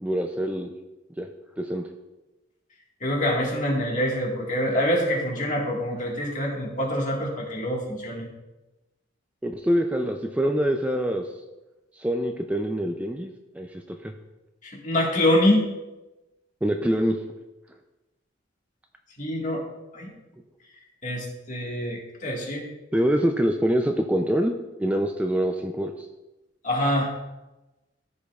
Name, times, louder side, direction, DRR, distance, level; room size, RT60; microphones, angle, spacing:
voice 1, 0.0-0.7 1.2-1.3 1.6-1.9 9.4-11.4 11.9-14.1 16.6-17.2 22.9-24.5 24.8-26.1, equal, 10° right, 4 dB, 0.4 m, -25 dB
voice 2, 3.0-8.3 14.6-15.7 19.2-19.6 19.9-20.1 21.0-22.6 26.6-27.1, left 1 dB, 40° left, -1 dB, 1.7 m, -25 dB
14.0 x 5.2 x 2.3 m, 1.1 s
head